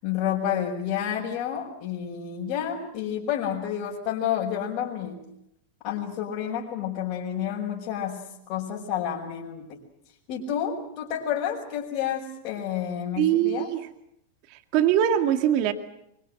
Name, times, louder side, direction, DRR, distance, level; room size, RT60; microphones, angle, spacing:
voice 1, 0.0-5.2 5.8-8.2 8.5-9.8 10.3-13.7, left 9 dB, 50° left, -5 dB, 5.6 m, -30 dB
voice 2, 13.2-13.9 14.5-15.7, right 10 dB, 55° right, 8 dB, 2.2 m, -22 dB
24.0 x 23.5 x 7.9 m, 0.79 s
hypercardioid pair, 115°, 0 cm